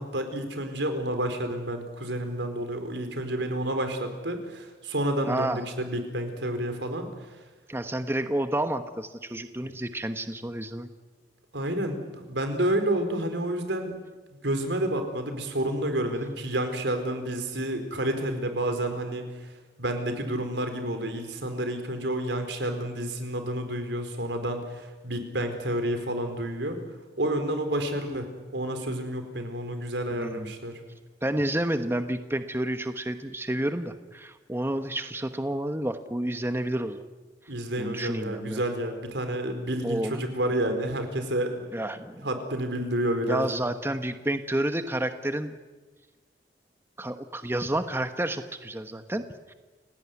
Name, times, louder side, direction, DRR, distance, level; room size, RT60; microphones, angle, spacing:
voice 1, 0.0-7.1 11.5-14.0 14.4-19.3 19.8-26.8 27.2-28.3 28.5-30.7 37.5-41.6 42.2-43.5, right 1 dB, 85° right, 7 dB, 4.5 m, -29 dB
voice 2, 5.3-5.6 7.7-10.9 30.2-30.5 31.2-37.0 37.8-38.6 39.8-40.2 41.7-42.3 43.3-45.5 47.0-49.2 49.5-49.6, right 1 dB, 15° right, 8 dB, 1.1 m, -30 dB
29.5 x 18.0 x 9.7 m, 1.2 s
head